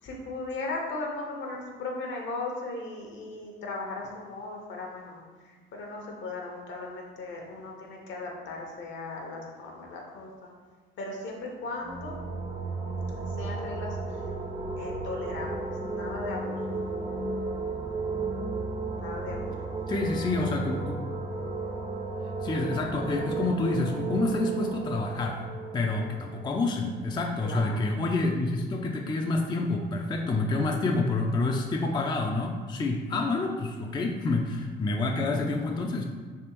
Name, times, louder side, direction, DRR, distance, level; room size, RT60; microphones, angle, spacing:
voice 1, 0.0-10.5 11.0-12.2 13.3-14.2 14.8-15.5 15.8-16.6 19.0-19.5 27.4-27.9, left 2 dB, 70° left, 0 dB, 0.8 m, -37 dB
sound 1, 11.6-27.2, right 3 dB, 30° right, 0.6 m, -34 dB
voice 2, 19.9-21.0 22.4-25.5 25.7-36.1, left 2 dB, 20° left, 2 dB, 0.3 m, -28 dB
3.4 x 3.2 x 2.9 m, 1.6 s
cardioid pair, 90°, 20 cm